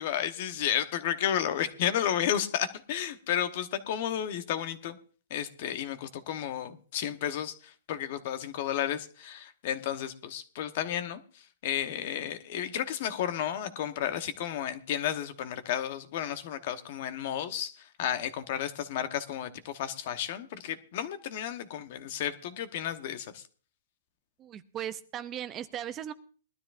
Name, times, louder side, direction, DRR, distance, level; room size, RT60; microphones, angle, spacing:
voice 1, 0.0-5.0 5.3-23.4, left 10 dB, 45° left, 10 dB, 1.1 m, -32 dB
voice 2, 24.4-26.1, right 10 dB, 20° right, 13 dB, 0.5 m, -37 dB
20.5 x 12.5 x 2.6 m, 0.41 s
hypercardioid pair, 155°, 0 cm